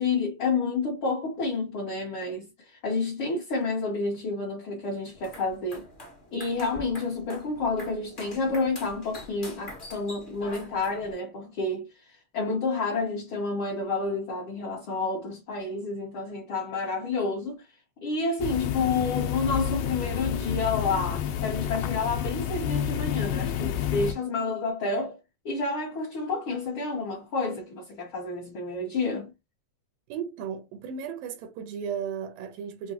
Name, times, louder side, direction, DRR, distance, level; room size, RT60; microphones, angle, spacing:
voice 1, 0.0-5.9 6.3-17.7 18.0-25.2 25.4-29.3, left 3 dB, 60° left, 1.4 m, -29 dB
sound 1, 5.1-11.1, left 1 dB, 35° left, 0.8 m, -45 dB
sound 2, 18.4-24.1, left 10 dB, 80° left, 2.1 m, -29 dB
voice 2, 30.1-32.9, right 7 dB, 85° right, 2.4 m, -35 dB
5.9 x 2.2 x 2.8 m
omnidirectional pair, 3.8 m